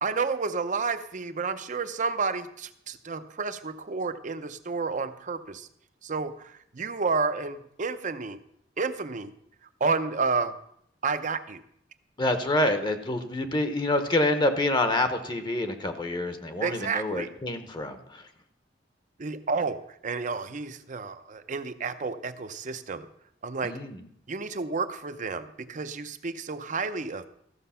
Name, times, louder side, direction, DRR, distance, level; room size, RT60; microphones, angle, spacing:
voice 1, 0.0-5.7 6.0-8.4 8.8-9.3 9.8-10.5 11.0-11.6 16.6-17.3 19.2-23.1 23.4-23.8 24.3-27.3, right 4 dB, 45° right, 11 dB, 0.6 m, -30 dB
voice 2, 12.2-18.0 23.6-24.0, left 1 dB, 25° left, 8 dB, 0.8 m, -27 dB
14.0 x 6.6 x 5.6 m, 0.71 s
head